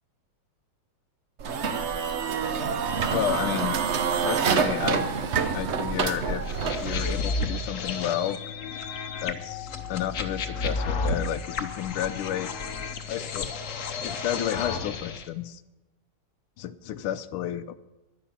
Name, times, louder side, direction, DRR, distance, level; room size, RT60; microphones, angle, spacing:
sound 1, 1.4-7.2, right 6 dB, 70° right, 0.6 m, -27 dB
voice 1, 3.1-3.8 4.2-5.1 5.5-6.5 6.8-8.4 9.2-12.5 13.1-13.7 14.0-15.6 16.6-17.8, left 11 dB, 90° left, 12 dB, 1.5 m, -31 dB
sound 2, 6.5-15.3, left 4 dB, 55° left, 0.9 m, -32 dB
11.0 x 10.0 x 7.1 m, 1.0 s
omnidirectional pair, 2.3 m